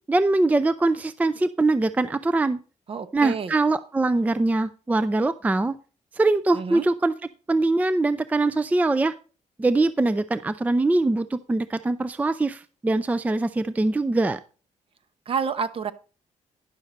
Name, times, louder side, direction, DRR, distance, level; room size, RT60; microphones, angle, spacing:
voice 1, 0.1-2.6 3.1-5.7 6.1-7.1 7.5-9.1 9.6-14.4, right 2 dB, 10° right, 14 dB, 0.4 m, -22 dB
voice 2, 2.9-3.5 6.5-6.9 15.3-15.9, right 6 dB, 45° right, 13 dB, 0.8 m, -29 dB
10.5 x 6.5 x 4.1 m, 0.35 s
cardioid pair, 115°, 13 cm